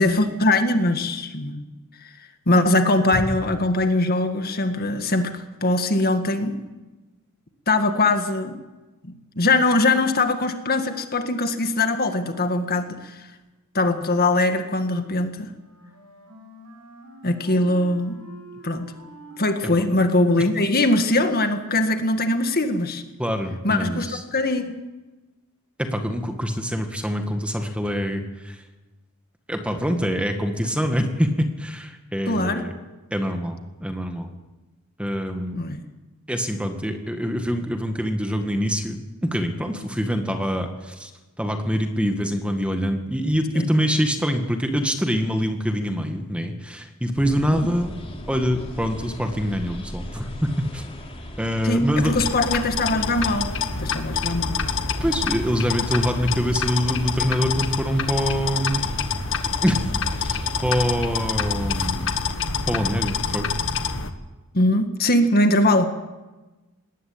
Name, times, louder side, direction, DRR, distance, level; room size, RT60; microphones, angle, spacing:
voice 1, 0.0-1.7 2.0-6.6 7.7-8.6 9.0-13.3 13.7-15.5 17.2-18.2 18.6-18.9 19.4-23.0 23.6-24.8 32.3-32.7 35.6-35.8 43.5-43.7 47.5-47.6 51.6-53.5 53.8-54.6 64.5-65.9, left 2 dB, 45° left, 7 dB, 1.8 m, -22 dB
Wind instrument woodwind instrument, 15.4-21.5, right 1 dB, 80° right, 6.8 m, -46 dB
voice 2, 23.2-24.2 25.8-28.6 29.5-32.7 33.1-34.3 35.0-35.6 36.3-41.1 41.4-47.9 48.3-50.8 51.4-52.1 54.7-58.9 59.6-62.1 62.7-63.5, equal, 5° right, 5 dB, 1.9 m, -25 dB
sound 1, 47.1-62.4, equal, 25° left, 3.7 m, -37 dB
sound 2, 52.0-64.1, left 5 dB, 60° left, 1.6 m, -27 dB
21.0 x 18.0 x 8.8 m, 1.1 s
head